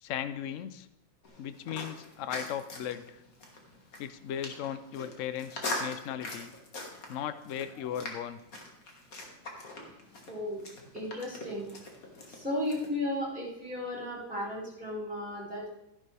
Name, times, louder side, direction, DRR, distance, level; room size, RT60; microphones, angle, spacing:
voice 1, 0.0-0.9 1.4-3.2 4.0-6.5 7.1-8.4, left 9 dB, 65° left, 12 dB, 0.7 m, -37 dB
sound 1, 1.2-12.9, left 2 dB, 50° left, 2.2 m, -42 dB
voice 2, 10.3-10.6 10.9-11.7 12.3-15.7, left 1 dB, 5° right, -8 dB, 5.0 m, -35 dB
13.5 x 11.0 x 3.4 m, 0.85 s
omnidirectional pair, 2.0 m